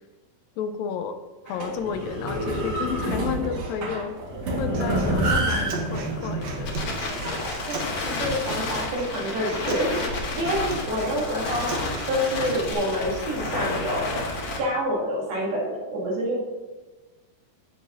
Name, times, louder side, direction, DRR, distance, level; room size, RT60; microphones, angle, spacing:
voice 1, 0.6-1.2 1.5-4.2 4.6-6.9, left 7 dB, 80° left, 8 dB, 2.3 m, -32 dB
sound 1, 1.5-7.7, right 1 dB, 45° right, 2.0 m, -28 dB
Human voice, 4.7-12.7, right 4 dB, 65° right, 1.8 m, -38 dB
Crackle, 5.3-14.6, left 2 dB, 50° left, 2.0 m, -31 dB
voice 2, 7.7-10.0 10.3-11.7 12.0-14.2 14.5-16.4, equal, 85° right, -5 dB, 4.3 m, -27 dB
16.0 x 6.6 x 2.7 m, 1.2 s
omnidirectional pair, 4.2 m